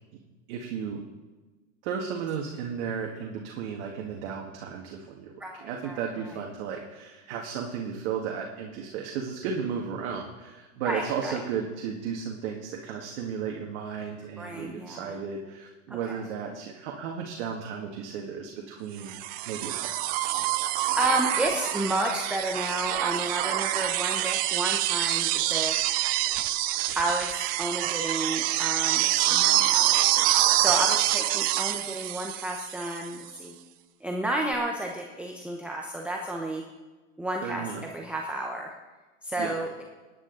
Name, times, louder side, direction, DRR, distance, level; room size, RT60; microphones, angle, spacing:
voice 1, 0.5-1.0 1.8-5.3 5.6-19.2 19.5-20.1 37.4-37.8 39.4-39.5, right 6 dB, 55° right, 0 dB, 1.9 m, -34 dB
voice 2, 5.4-6.0 6.3-6.4 10.8-11.4 14.4-15.1 15.9-16.2 20.7-25.8 26.9-33.5 34.0-36.6 37.2-38.7 39.2-39.8, right 1 dB, 5° right, 0 dB, 0.9 m, -31 dB
sound 1, 19.1-33.1 34.5-34.6, right 15 dB, 25° right, 0.3 m, -26 dB
19.5 x 10.0 x 4.0 m, 1.3 s
supercardioid pair, 135°, 40 cm